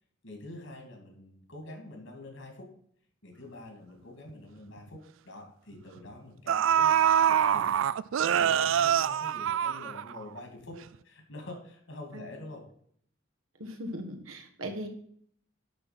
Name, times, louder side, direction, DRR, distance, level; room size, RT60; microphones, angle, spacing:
voice 1, 0.2-2.7 3.2-7.8 8.2-12.6, left 2 dB, 70° left, 2 dB, 2.8 m, -46 dB
sound 1, 4.3-4.4 4.8-5.0 6.0-6.1 6.5-10.4 10.7-10.8, right 9 dB, 75° right, 0.3 m, -25 dB
voice 2, 13.6-14.9, equal, 90° right, 4 dB, 1.6 m, -38 dB
10.5 x 4.3 x 6.2 m, 0.62 s
head